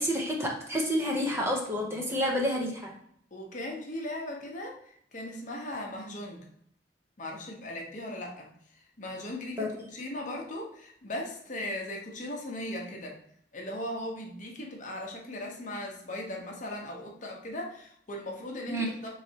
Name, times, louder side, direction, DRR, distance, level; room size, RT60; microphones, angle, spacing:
voice 1, 0.0-2.9 9.6-9.8 18.7-18.9, equal, 15° right, -1 dB, 0.7 m, -29 dB
voice 2, 3.3-4.8 5.1-6.4 7.2-8.5 9.0-13.2 13.5-19.1, left 1 dB, 45° left, 0 dB, 0.8 m, -38 dB
4.1 x 3.1 x 2.8 m, 0.66 s
head